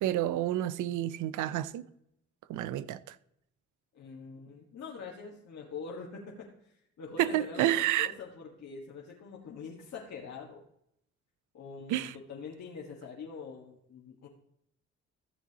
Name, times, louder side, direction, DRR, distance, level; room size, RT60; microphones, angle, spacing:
voice 1, 0.0-1.9 2.5-3.2 7.2-8.1 11.9-12.2, right 13 dB, 85° right, 0.6 m, -29 dB
voice 2, 3.9-10.6 11.5-14.3, left 5 dB, 60° left, 1.8 m, -44 dB
14.5 x 7.4 x 2.9 m
cardioid pair, 90°, 30 cm